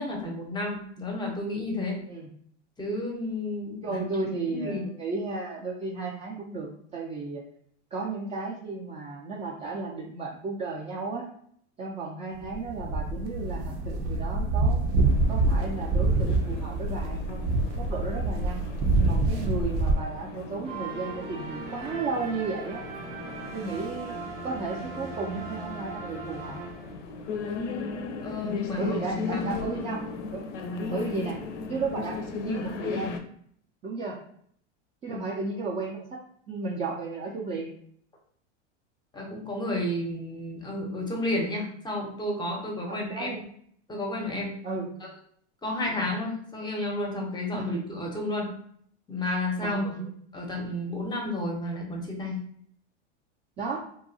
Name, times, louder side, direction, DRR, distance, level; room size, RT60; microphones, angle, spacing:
voice 1, 0.0-2.0 2.8-4.0 4.5-4.8 28.2-28.8 29.3-29.8 35.1-35.2 39.1-43.4 43.9-44.5 45.0-45.1 45.6-48.5 49.1-49.8 50.3-52.4, left 1 dB, 10° left, 0 dB, 0.6 m, -31 dB
voice 2, 3.8-7.4 7.9-11.3 11.8-14.8 15.3-17.5 17.8-18.7 19.1-22.8 23.5-24.2 24.4-26.6 28.8-30.0 30.3-30.4 30.9-31.4 31.7-32.2 32.4-33.1 33.8-34.2 35.0-36.2 36.5-37.7 42.9-43.4 44.6-44.9 45.9-46.1 47.5-47.8 49.6-50.1 53.6-53.8, right 3 dB, 20° right, -3 dB, 0.3 m, -34 dB
sound 1, 12.4-19.9, right 2 dB, 65° right, 0.6 m, -26 dB
sound 2, 15.0-33.2, left 4 dB, 85° left, 0.5 m, -37 dB
sound 3, 20.6-27.2, right 4 dB, 85° right, 1.0 m, -39 dB
2.7 x 2.3 x 2.6 m, 0.64 s
hypercardioid pair, 115°, 35 cm